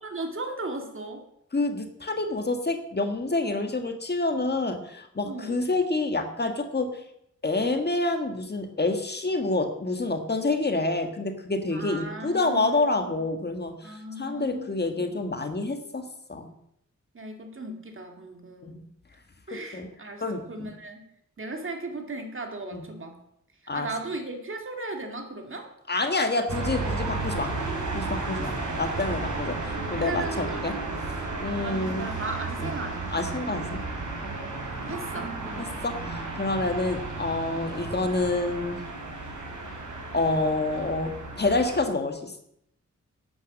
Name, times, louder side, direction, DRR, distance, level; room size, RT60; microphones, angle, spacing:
voice 1, 0.0-1.2 5.2-5.7 11.7-13.2 13.8-15.0 17.1-18.8 19.5-20.2 20.5-21.0 21.4-23.2 23.7-25.7 28.2-28.5 30.0-30.6 31.5-33.3 34.2-34.5 34.8-35.3, right 2 dB, 40° right, 4 dB, 2.3 m, -37 dB
voice 2, 1.5-6.9 7.4-13.8 14.2-16.5 18.6-18.8 19.5-19.9 20.2-20.7 22.7-22.8 23.7-23.9 25.9-27.5 27.9-30.7 31.4-32.1 32.6-32.7 33.1-33.8 35.8-38.8 40.1-42.4, left 2 dB, 35° left, 6 dB, 1.6 m, -28 dB
sound 1, 26.5-41.9, right 3 dB, 70° right, 4.3 m, -33 dB
11.5 x 9.4 x 7.4 m, 0.74 s
wide cardioid pair, 115°, 31 cm